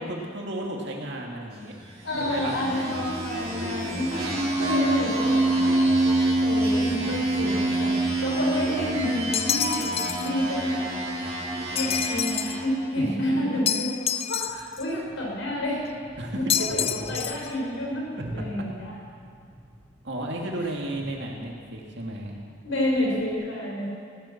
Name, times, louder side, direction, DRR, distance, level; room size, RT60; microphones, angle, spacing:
voice 1, 0.0-1.8 2.1-2.7 12.9-13.4 16.2-16.8 18.3-18.4 20.0-22.3, right 1 dB, 60° right, 0 dB, 2.4 m, -33 dB
sound 1, 1.9-12.8, right 2 dB, 35° right, 5.1 m, -26 dB
voice 2, 2.0-5.8 6.4-9.9 10.2-10.8 11.7-15.9 16.3-18.1 18.3-18.9 22.6-23.9, left 1 dB, 90° left, -3 dB, 5.2 m, -29 dB
sound 2, 9.3-10.3 11.8-12.6 13.7-14.8 16.5-17.5, left 9 dB, 30° left, 0.4 m, -28 dB
sound 3, 14.4-23.3, equal, 10° left, 1.9 m, -45 dB
16.0 x 11.5 x 7.3 m, 2.2 s
head